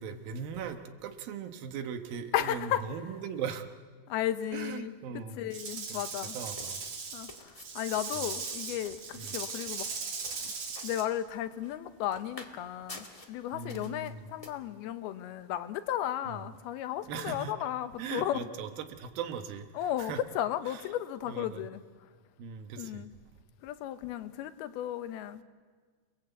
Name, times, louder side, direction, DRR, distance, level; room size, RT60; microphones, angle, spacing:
voice 1, 0.0-3.7 4.5-5.5 5.9-6.0 6.3-6.8 9.1-9.3 13.5-14.3 16.3-16.4 17.1-17.7 18.0-20.2 20.7-20.8 21.3-21.6 22.4-23.1, right 7 dB, 75° right, 3.0 m, -39 dB
voice 2, 2.3-2.8 4.1-5.0 5.4-6.4 7.1-9.9 10.3-10.5 10.8-18.4 19.7-21.8 22.8-23.1 23.6-25.4, left 11 dB, 90° left, 2.9 m, -34 dB
Rattle / Rattle (instrument), 5.5-11.1, right 5 dB, 50° right, 3.7 m, -38 dB
sound 1, 5.7-14.5, left 2 dB, 20° left, 0.9 m, -52 dB
29.0 x 21.0 x 8.1 m
omnidirectional pair, 4.3 m